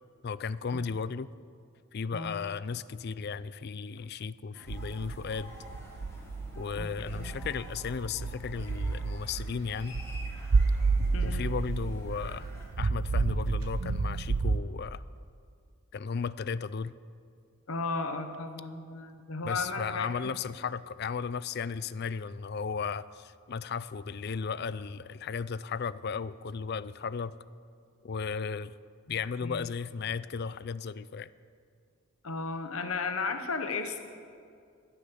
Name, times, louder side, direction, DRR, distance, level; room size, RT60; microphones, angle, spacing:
voice 1, 0.2-1.3 1.9-5.6 6.6-10.0 11.2-12.5 12.8-15.0 15.9-16.9 19.4-27.3 28.0-28.7 29.1-31.3, left 5 dB, 45° left, 17 dB, 0.4 m, -35 dB
voice 2, 2.1-2.4 6.8-7.3 11.1-11.5 17.7-20.4 29.4-29.7 32.2-34.0, left 4 dB, 70° left, 7 dB, 1.0 m, -35 dB
sound 1, 4.5-12.6, equal, 10° left, 3.1 m, -50 dB
sound 2, 4.7-14.6, right 4 dB, 75° right, 0.6 m, -31 dB
15.5 x 10.0 x 7.0 m, 2.3 s
head